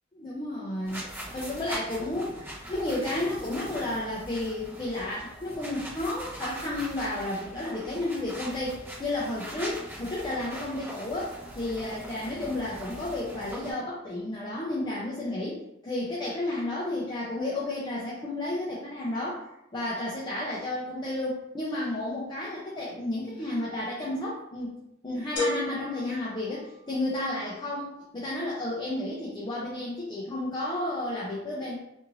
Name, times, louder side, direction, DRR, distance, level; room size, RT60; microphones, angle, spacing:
voice 1, 0.2-1.0 1.3-2.3 2.7-19.4 19.7-31.8, left 1 dB, 20° left, -7 dB, 0.4 m, -32 dB
sound 1, 0.8-13.7, right 1 dB, 10° right, 0.8 m, -41 dB
sound 2, 25.4-27.2, left 2 dB, 60° left, 1.1 m, -34 dB
2.6 x 2.5 x 2.9 m, 0.83 s
head